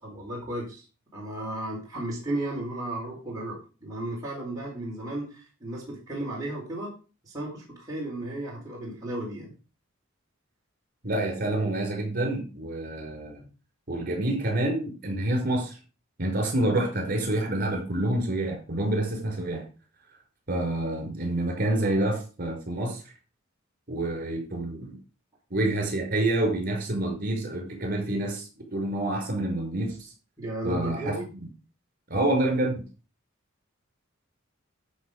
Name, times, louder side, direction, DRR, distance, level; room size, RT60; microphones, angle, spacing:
voice 1, 0.0-0.8 1.1-6.9 7.2-9.5 30.4-31.3, right 1 dB, 20° right, -5 dB, 4.3 m, -34 dB
voice 2, 11.0-13.4 13.9-15.8 16.2-19.6 20.5-23.0 23.9-25.0 25.5-30.1 30.6-31.1 32.1-32.9, right 1 dB, 45° right, 2 dB, 5.6 m, -27 dB
13.5 x 6.4 x 5.0 m, 0.34 s
head